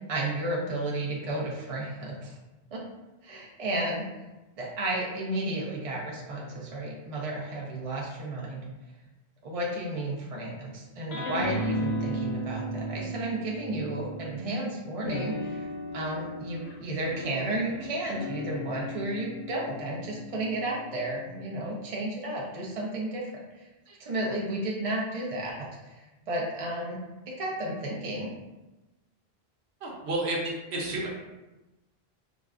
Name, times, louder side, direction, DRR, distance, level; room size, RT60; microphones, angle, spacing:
voice 1, 0.1-2.4 2.7-2.8 3.2-4.0 4.6-8.6 9.4-15.7 15.9-23.2 23.5-25.6 25.9-27.0 27.4-28.3, right 1 dB, 40° right, -3 dB, 0.7 m, -33 dB
sound 1, 11.1-14.5 15.0-21.8, equal, 75° left, 0.8 m, -35 dB
voice 2, 29.8-31.1, right 1 dB, 90° right, -2 dB, 1.0 m, -31 dB
4.9 x 2.2 x 2.4 m, 1.1 s
omnidirectional pair, 1.1 m